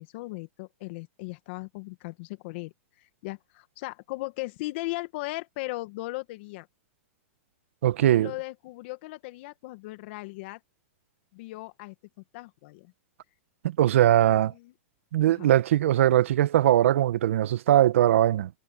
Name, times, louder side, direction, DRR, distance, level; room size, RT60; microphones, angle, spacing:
voice 1, 0.0-2.7 3.2-6.7 8.2-10.6 11.3-11.9 12.3-12.9 14.2-14.7 15.3-15.5, left 22 dB, 55° left, 2.1 m, -37 dB
voice 2, 7.8-8.3 13.6-14.5 15.1-18.5, right 12 dB, 70° right, 1.5 m, -21 dB
hypercardioid pair, 125°, 7 cm